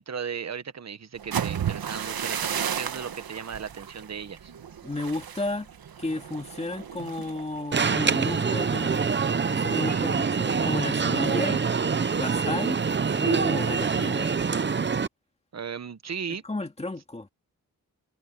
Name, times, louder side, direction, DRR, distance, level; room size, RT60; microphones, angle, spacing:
voice 1, 0.0-4.5 9.8-10.1 15.5-16.4, right 7 dB, 50° right, 1.1 m, -36 dB
sound 1, 1.2-9.0 9.4-9.7 10.1-10.5, right 8 dB, 85° right, 1.4 m, -34 dB
voice 2, 4.8-5.7 6.0-9.0 9.5-11.7 12.2-12.8 13.2-14.3 16.4-17.3, left 2 dB, 20° left, 2.4 m, -33 dB
Alarm, 7.7-15.1, right 5 dB, 30° right, 0.7 m, -25 dB
wide cardioid pair, 135°, 35 cm